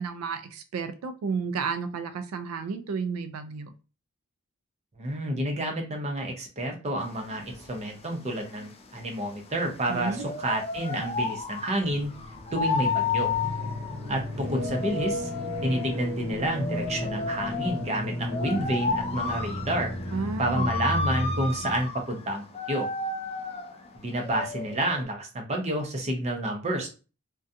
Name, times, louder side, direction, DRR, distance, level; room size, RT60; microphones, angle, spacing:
voice 1, 0.0-3.7 9.9-10.2 20.1-20.7, right 5 dB, 90° right, 9 dB, 0.3 m, -32 dB
voice 2, 5.0-12.1 12.5-13.3 14.1-15.3 15.6-19.9 20.4-22.9 24.0-26.9, right 1 dB, 30° right, 3 dB, 0.5 m, -29 dB
sound 1, 7.0-25.0, left 4 dB, 30° left, 0.3 m, -33 dB
sound 2, 11.8-21.8, left 1 dB, 5° right, 1.0 m, -34 dB
2.4 x 2.2 x 2.6 m, 0.33 s
head